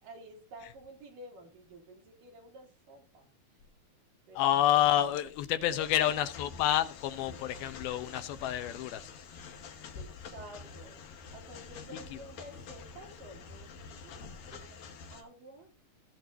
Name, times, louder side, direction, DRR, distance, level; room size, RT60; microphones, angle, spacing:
voice 1, 0.0-3.6 4.3-5.4 5.8-5.9 9.9-14.2 14.5-15.8, right 1 dB, 60° right, 4.0 m, -51 dB
voice 2, 4.4-9.1, left 12 dB, 75° left, 2.6 m, -28 dB
sound 1, 5.8-15.2, left 5 dB, 60° left, 2.1 m, -47 dB
17.0 x 8.6 x 2.7 m
omnidirectional pair, 4.5 m